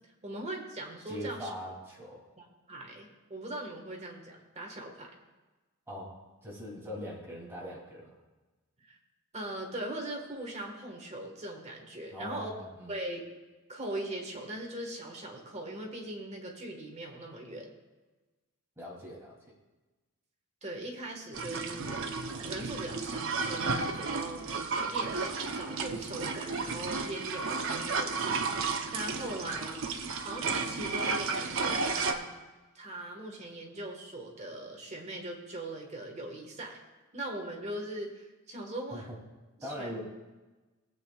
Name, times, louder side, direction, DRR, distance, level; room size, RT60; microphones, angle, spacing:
voice 1, 0.2-1.5 2.4-5.1 8.8-9.0 9.3-12.5 12.9-13.2 13.7-17.7 20.6-29.8 30.2-32.3 32.7-36.8 37.1-39.1 39.6-40.0, right 1 dB, 30° right, 1 dB, 1.5 m, -40 dB
voice 2, 1.1-2.3 5.9-8.1 12.1-12.9 18.8-19.5 38.9-39.2 39.6-40.0, equal, 10° right, -4 dB, 2.8 m, -41 dB
sound 1, 21.3-32.1, right 4 dB, 60° right, 0.8 m, -33 dB
19.0 x 8.4 x 2.4 m, 1.2 s
head